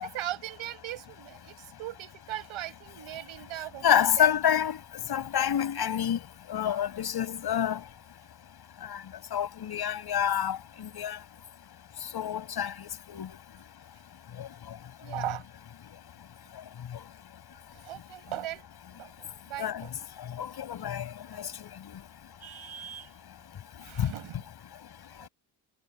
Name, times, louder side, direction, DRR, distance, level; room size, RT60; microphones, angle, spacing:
voice 1, 0.0-4.3 15.0-15.5 17.7-18.7 19.0-19.9 20.8-20.9 22.4-23.2 23.8-24.4 25.2-25.3, right 13 dB, 85° right, 5.8 m, -39 dB
voice 2, 3.8-4.8 5.1-6.2 6.5-7.8 8.9-9.0 9.3-11.2 12.1-13.3 14.4-14.5 19.6-19.8 20.4-21.0 21.4-21.7 24.0-24.1, left 9 dB, 55° left, 6.8 m, -28 dB
cardioid pair, 135°, 47 cm